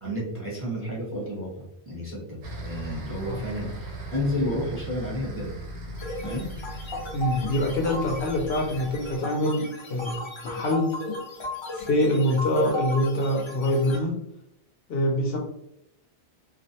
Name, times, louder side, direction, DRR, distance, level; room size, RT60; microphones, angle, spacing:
voice 1, 0.0-5.5 6.2-6.5, equal, 15° right, -5 dB, 0.7 m, -31 dB
sound 1, 2.4-9.2, right 1 dB, 85° right, 1.0 m, -38 dB
sound 2, 6.0-14.0, left 2 dB, 45° left, 0.3 m, -36 dB
voice 2, 7.1-10.9 11.7-14.2 14.9-15.4, left 1 dB, 65° left, 0 dB, 0.7 m, -25 dB
2.4 x 2.0 x 2.7 m, 0.77 s
omnidirectional pair, 1.1 m